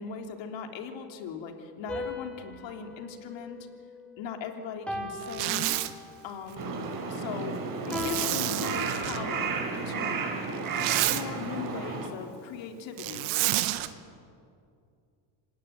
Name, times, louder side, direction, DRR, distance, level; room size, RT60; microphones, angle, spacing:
voice 1, 0.0-3.7 4.2-5.7 6.2-7.5 7.9-9.6 9.8-10.2 10.8-13.3, left 6 dB, 60° left, 5 dB, 3.3 m, -39 dB
sound 1, 1.9-4.3 4.9-6.3 7.9-9.6, left 2 dB, ahead, 3.9 m, -38 dB
Zipper (clothing), 5.2-5.9 7.9-9.2 10.5-11.2 13.0-13.9, right 17 dB, 75° right, 1.6 m, -29 dB
Crow, 6.6-12.1, right 4 dB, 40° right, 5.3 m, -33 dB
26.5 x 19.0 x 9.2 m, 2.4 s
supercardioid pair, 95°, 50 cm